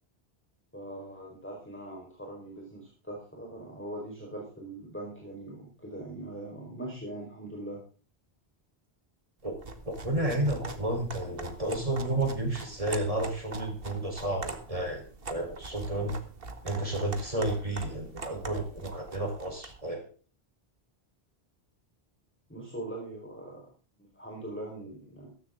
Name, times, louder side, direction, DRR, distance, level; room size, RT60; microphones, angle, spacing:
voice 1, 0.7-7.8 22.5-23.7 24.0-25.3, right 1 dB, 10° left, -1 dB, 4.7 m, -41 dB
sound 1, 9.5-19.8, right 3 dB, 65° right, 1.9 m, -43 dB
voice 2, 9.8-16.1 16.6-20.0, right 1 dB, 35° right, 3 dB, 4.3 m, -31 dB
15.5 x 14.5 x 3.8 m, 0.38 s
omnidirectional pair, 1.0 m